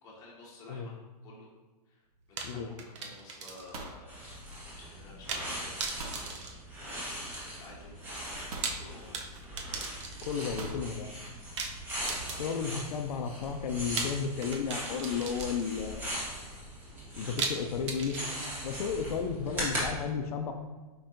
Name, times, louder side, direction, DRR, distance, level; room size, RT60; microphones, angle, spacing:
voice 1, 0.0-1.0 1.2-1.5 1.9-4.3 4.8-6.4 6.8-8.0 8.6-9.4 12.2-12.5, left 2 dB, 15° left, -5 dB, 1.0 m, -52 dB
sound 1, 2.1-2.4 2.7-3.1 3.4-5.0 6.0-6.3 7.4-7.5 8.5-8.9 10.6-10.9, right 2 dB, 70° right, 0.8 m, -43 dB
sound 2, 2.4-3.9 4.2-4.3 5.3-5.5 5.8-7.3 8.4-10.5 11.6-12.8 14.0-15.9 17.4-18.8, right 4 dB, 50° right, 0.6 m, -38 dB
sound 3, 4.1-19.9, equal, 10° right, 0.8 m, -40 dB
voice 2, 10.2-11.1 12.4-16.1 17.2-18.2 18.6-20.5, left 6 dB, 70° left, 5 dB, 0.4 m, -33 dB
4.6 x 4.3 x 2.5 m, 1.3 s
supercardioid pair, 170°, 20 cm